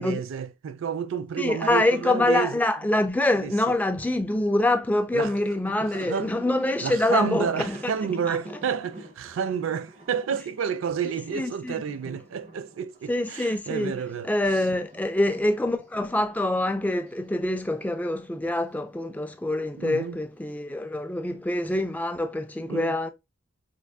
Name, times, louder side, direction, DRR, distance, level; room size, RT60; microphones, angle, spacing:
voice 1, 0.0-2.6 3.4-3.5 5.1-5.3 6.1-6.3 6.8-14.3 19.8-20.2 22.7-22.9, right 7 dB, 80° right, 0.4 m, -30 dB
voice 2, 1.4-7.9 8.3-8.4 11.3-11.8 13.1-23.1, left 1 dB, 10° left, 0.3 m, -25 dB
Thunder, 5.0-5.1 5.3-14.2 14.4-18.7 19.0-19.2 20.3-21.0, right 1 dB, 35° right, 0.7 m, -47 dB
4.4 x 2.4 x 2.3 m
head